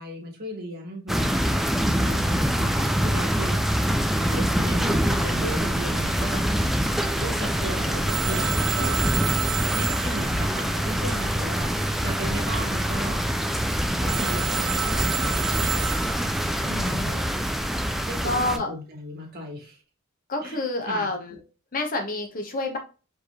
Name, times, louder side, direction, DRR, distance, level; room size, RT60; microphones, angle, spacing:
voice 1, 0.0-1.6 2.0-3.6 4.1-6.4 7.2-9.0 9.7-13.2 13.9-15.8 16.6-17.1 18.0-19.8 20.4-20.6 20.9-21.1, right 1 dB, 50° right, -1 dB, 1.6 m, -36 dB
sound 1, 1.1-18.6, equal, ahead, 0.3 m, -25 dB
voice 2, 1.8-2.3 7.1-7.7 14.1-14.4 16.7-17.3 18.2-18.7 20.3-21.4 21.7-22.8, left 2 dB, 40° left, 4 dB, 0.8 m, -30 dB
Telephone, 8.1-11.7 14.1-16.6, right 9 dB, 80° right, 0.5 m, -31 dB
4.6 x 3.4 x 2.8 m, 0.34 s
head